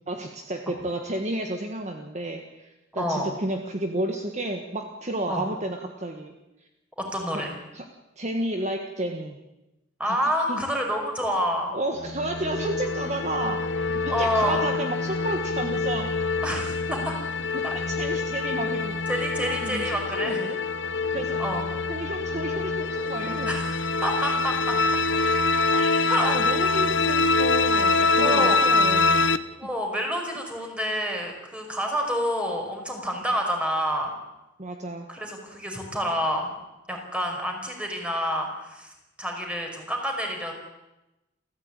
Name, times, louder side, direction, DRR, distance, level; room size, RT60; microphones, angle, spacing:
voice 1, 0.1-6.3 7.3-7.4 7.7-7.9 8.2-9.4 10.0-10.2 10.5-10.6 11.7-13.6 13.9-16.1 16.9-17.0 17.5-18.9 19.4-20.6 21.1-21.4 21.9-23.5 25.7-29.3 34.6-35.1, right 1 dB, 35° right, 4 dB, 1.6 m, -31 dB
voice 2, 2.9-3.3 5.3-5.5 7.0-7.5 10.0-11.7 14.1-14.7 16.4-17.1 17.5-17.8 19.1-20.5 21.4-21.7 23.5-24.8 26.1-26.4 28.2-28.6 29.6-34.1 35.1-36.5 36.9-38.9 39.2-40.5, equal, 5° right, 2 dB, 5.3 m, -28 dB
sound 1, 12.0-29.4, left 3 dB, 60° left, 1.0 m, -25 dB
29.0 x 14.5 x 9.0 m, 1.0 s
head